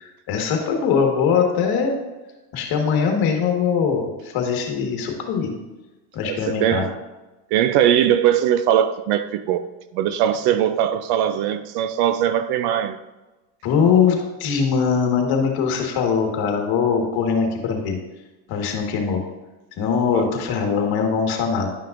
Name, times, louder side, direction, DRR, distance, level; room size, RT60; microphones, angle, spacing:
voice 1, 0.3-1.9 2.5-5.5 6.1-6.8 13.6-18.0 18.5-19.2 19.8-21.7, left 6 dB, 50° left, 2 dB, 1.7 m, -21 dB
voice 2, 6.2-6.9 7.5-9.6 9.9-13.0 20.1-20.3, right 10 dB, 55° right, 11 dB, 0.6 m, -20 dB
11.0 x 5.6 x 2.6 m, 1.1 s
supercardioid pair, 125°, 48 cm